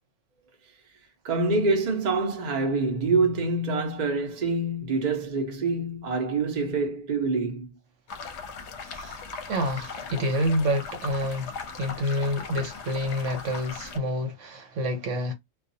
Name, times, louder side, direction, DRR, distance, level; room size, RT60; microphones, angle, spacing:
voice 1, 1.2-7.7, right 3 dB, 45° right, 0.7 m, -26 dB
sound 1, 8.1-14.0, left 5 dB, 65° left, 0.9 m, -39 dB
voice 2, 8.9-9.2 9.5-15.3, equal, 65° right, 1.1 m, -28 dB
2.3 x 2.3 x 2.6 m
omnidirectional pair, 1.4 m